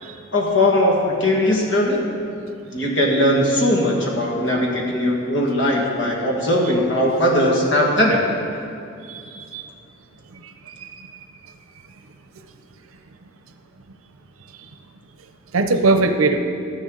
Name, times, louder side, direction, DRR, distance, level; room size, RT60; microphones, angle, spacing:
voice 1, 0.3-2.0 2.7-8.2, left 1 dB, 60° left, -2 dB, 1.8 m, -19 dB
voice 2, 9.1-9.7 10.3-11.1 15.5-16.4, right 3 dB, 90° right, 7 dB, 0.7 m, -22 dB
12.5 x 10.0 x 3.9 m, 2.5 s
head